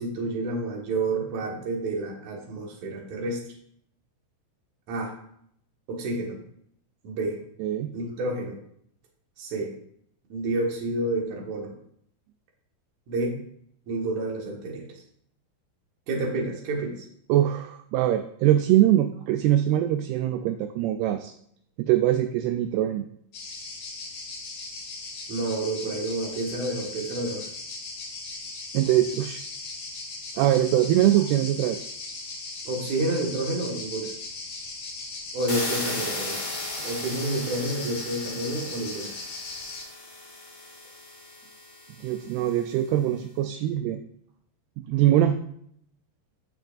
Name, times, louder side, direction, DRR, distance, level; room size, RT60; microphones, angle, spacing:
voice 1, 0.0-3.4 4.9-5.2 5.9-6.4 7.0-7.4 7.9-8.6 9.4-9.7 10.3-11.7 13.1-13.4 13.9-14.9 16.1-17.1 25.3-27.5 32.7-34.1 35.3-36.4 36.8-39.1, right 2 dB, 55° right, -1 dB, 2.6 m, -29 dB
voice 2, 7.6-7.9 17.3-21.3 21.8-23.1 28.7-29.4 30.4-31.8 42.0-44.0 44.8-45.4, right 12 dB, 80° right, 7 dB, 2.4 m, -23 dB
sound 1, 23.3-39.8, left 3 dB, 55° left, 3.1 m, -38 dB
sound 2, 35.5-42.3, left 2 dB, 35° left, 1.1 m, -36 dB
15.5 x 5.9 x 2.6 m, 0.68 s
omnidirectional pair, 4.7 m